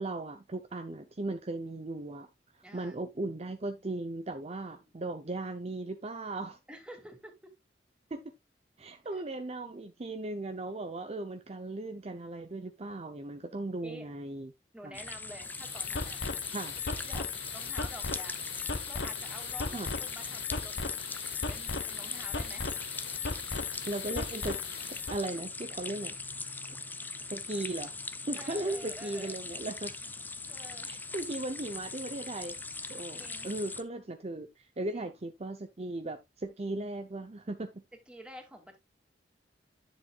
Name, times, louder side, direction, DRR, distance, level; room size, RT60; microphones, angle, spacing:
voice 1, 0.0-2.3 2.7-6.6 8.1-8.2 8.8-14.5 14.8-15.0 16.5-16.7 19.7-19.9 23.9-24.6 24.9-26.2 27.2-27.9 28.3-29.9 30.8-32.6 32.9-37.8, right 2 dB, 35° right, 0.7 m, -37 dB
voice 2, 2.6-3.0 4.6-5.1 6.7-7.5 9.1-9.2 13.8-14.1 14.7-16.2 16.9-18.4 18.9-20.9 21.5-22.7 28.4-29.5 30.5-30.9 33.1-33.5 34.9-35.1 38.1-38.8, right 1 dB, 5° right, 2.4 m, -49 dB
sound 1, 14.9-33.8, left 3 dB, 10° left, 0.6 m, -41 dB
sound 2, 15.4-25.2, left 5 dB, 80° left, 1.2 m, -37 dB
10.5 x 7.3 x 2.4 m
head